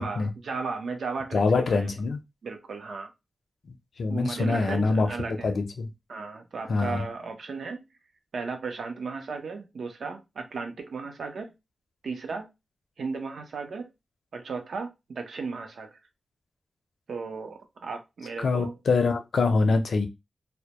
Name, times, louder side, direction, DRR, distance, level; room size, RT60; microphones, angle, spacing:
voice 1, 0.0-1.9 2.4-3.1 4.1-5.5 6.1-7.8 8.3-11.5 12.0-12.5 13.0-13.9 14.3-16.0 17.1-18.7, right 4 dB, 70° right, 0.5 m, -35 dB
voice 2, 1.3-2.2 3.7-5.9 6.7-7.0 18.4-20.1, left 3 dB, 65° left, 0.5 m, -25 dB
2.1 x 2.0 x 2.8 m
wide cardioid pair, 140°, 0 cm